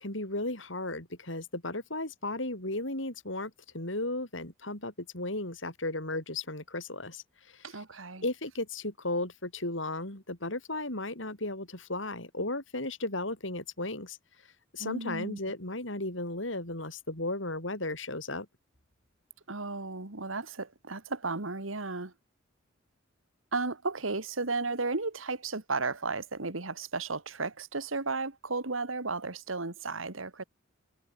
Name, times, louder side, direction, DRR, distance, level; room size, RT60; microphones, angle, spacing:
voice 1, 0.0-7.8 8.2-14.2 14.7-18.5, left 2 dB, 65° left, 7.1 m, -35 dB
voice 2, 7.6-8.2 14.8-15.4 19.5-22.1 23.5-30.4, right 3 dB, 80° right, 2.3 m, -34 dB
head